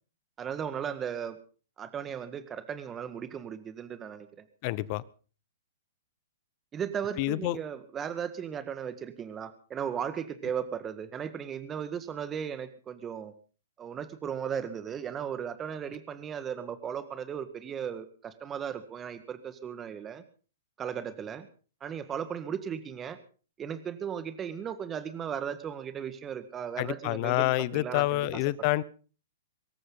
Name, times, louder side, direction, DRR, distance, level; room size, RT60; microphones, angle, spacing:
voice 1, 0.4-1.4 1.8-4.4 6.7-13.3 13.8-20.2 20.8-21.5 21.8-23.2 23.6-28.4, right 8 dB, 20° right, 1.7 m, -36 dB
voice 2, 4.6-5.0 7.2-7.6 26.8-28.8, left 18 dB, 40° left, 0.9 m, -28 dB
24.0 x 14.0 x 4.0 m
hypercardioid pair, 120°, 0 cm